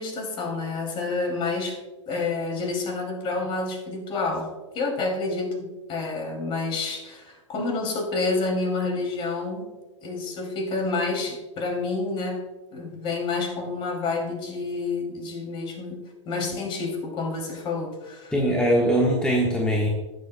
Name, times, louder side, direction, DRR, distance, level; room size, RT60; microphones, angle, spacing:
voice 1, 0.0-1.8 2.1-9.7 10.0-12.4 12.7-18.3, left 3 dB, 30° left, 2 dB, 2.7 m, -29 dB
voice 2, 18.3-19.9, equal, 5° left, -2 dB, 1.3 m, -21 dB
18.0 x 7.6 x 2.2 m, 1.2 s
hypercardioid pair, 110°, 16 cm